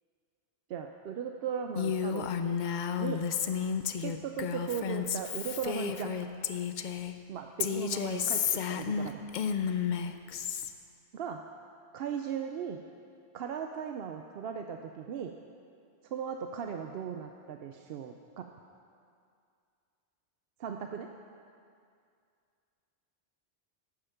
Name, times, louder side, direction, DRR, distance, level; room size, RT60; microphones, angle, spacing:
voice 1, 0.7-2.3 3.0-3.3 4.0-6.1 7.3-9.3 11.1-11.4 11.9-12.8 13.3-15.3 16.0-18.5 20.6-21.1, right 7 dB, 70° right, 4 dB, 0.8 m, -37 dB
Female speech woman speaking, 1.7-7.1 7.6-10.7, left 7 dB, 55° left, 0.6 m, -32 dB
12.5 x 8.8 x 5.8 m, 2.4 s
omnidirectional pair, 1.1 m